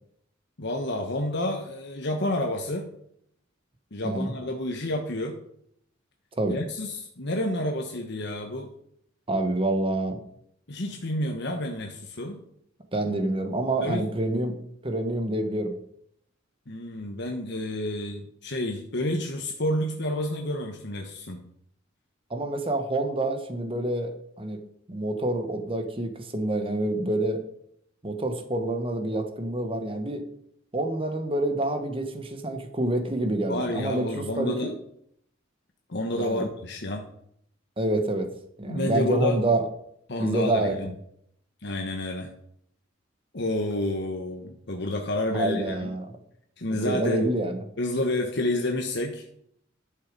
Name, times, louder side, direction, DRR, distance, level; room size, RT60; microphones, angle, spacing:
voice 1, 0.6-2.9 3.9-5.4 6.5-8.7 10.7-12.4 13.8-14.1 16.7-21.4 33.5-34.7 35.9-37.1 38.7-39.4 40.1-40.9 41.6-42.3 43.3-45.9 46.6-47.3 47.8-49.2, left 1 dB, 60° left, 3 dB, 1.2 m, -29 dB
voice 2, 9.3-10.2 12.9-14.6 14.8-15.7 22.3-24.6 24.9-27.4 28.0-30.2 30.7-34.7 36.1-36.5 37.8-38.3 38.6-39.7 40.2-40.8 45.3-46.1 46.7-47.6, right 1 dB, 30° right, 7 dB, 1.4 m, -27 dB
11.5 x 6.6 x 5.3 m, 0.71 s
head